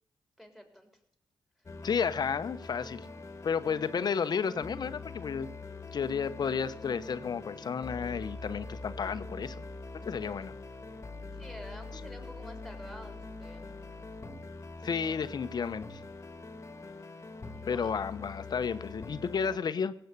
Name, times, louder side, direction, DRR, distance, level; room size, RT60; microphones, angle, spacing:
voice 1, 0.4-0.9 11.4-13.7 17.4-17.9, equal, 5° right, 5 dB, 3.9 m, -49 dB
sound 1, 1.7-19.6, left 3 dB, 30° left, 1.8 m, -44 dB
voice 2, 1.8-3.1 3.4-5.5 5.9-9.6 10.0-10.5 14.8-16.0 17.7-19.9, left 6 dB, 55° left, 12 dB, 1.0 m, -32 dB
17.0 x 7.8 x 6.9 m, 0.75 s
supercardioid pair, 55°, 8 cm